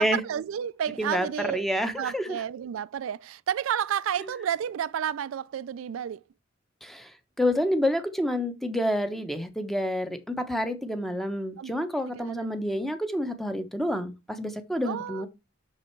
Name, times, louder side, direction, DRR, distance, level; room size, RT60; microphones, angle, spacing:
voice 1, 0.0-1.7 2.0-6.2 11.6-11.8 12.1-12.5 14.8-15.3, right 9 dB, 80° right, 0.3 m, -31 dB
voice 2, 1.0-2.4 6.8-7.1 7.4-15.3, equal, ahead, 0.9 m, -28 dB
6.3 x 6.1 x 4.5 m
head